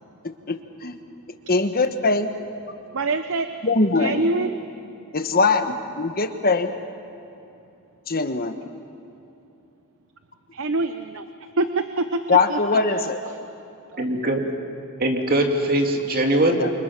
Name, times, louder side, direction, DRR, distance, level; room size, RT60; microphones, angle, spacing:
voice 1, 0.5-0.9 1.5-2.3 3.6-4.2 5.1-6.7 8.1-8.5 12.3-13.2 16.5-16.7, left 3 dB, 40° left, 8 dB, 1.3 m, -21 dB
voice 2, 2.9-3.5 4.0-4.6 10.5-11.3 11.6-12.2 12.5-13.1 13.9-14.0, right 3 dB, 60° right, 9 dB, 0.8 m, -25 dB
voice 3, 14.0-14.5 15.0-16.6, right 1 dB, 40° right, 3 dB, 2.4 m, -21 dB
28.5 x 25.0 x 6.1 m, 2.8 s
head